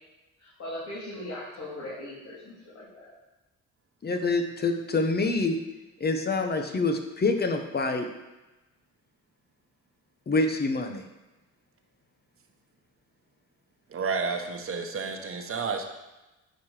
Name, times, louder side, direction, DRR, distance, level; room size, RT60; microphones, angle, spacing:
voice 1, 0.4-3.1, left 1 dB, 55° left, -8 dB, 3.0 m, -39 dB
voice 2, 4.0-5.6 6.0-8.1 10.3-11.0, left 3 dB, 35° left, 5 dB, 1.1 m, -26 dB
voice 3, 13.9-15.8, right 5 dB, 45° right, 4 dB, 1.2 m, -31 dB
9.3 x 4.9 x 5.0 m, 1.1 s
cardioid pair, 90°, 30 cm